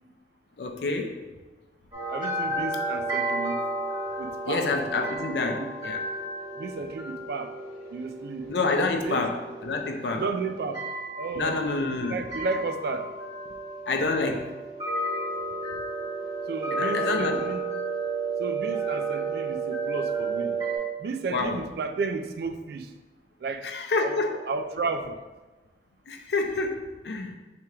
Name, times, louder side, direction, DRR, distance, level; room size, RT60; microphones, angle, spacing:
voice 1, 0.6-1.2 4.5-6.0 8.5-10.2 11.4-12.2 13.9-14.5 16.7-17.4 21.3-21.6 23.6-24.4 26.1-27.4, left 3 dB, 75° left, 4 dB, 0.5 m, -28 dB
sound 1, 1.9-20.8, right 3 dB, 25° right, 1.2 m, -32 dB
voice 2, 2.1-3.6 4.2-4.7 5.2-5.7 6.6-7.5 7.9-8.5 9.0-9.2 10.1-10.9 11.2-13.1 16.5-17.6 18.4-20.6 21.0-22.9 23.4-25.2, right 4 dB, 65° right, 8 dB, 0.3 m, -33 dB
3.4 x 2.9 x 4.7 m, 1.2 s
head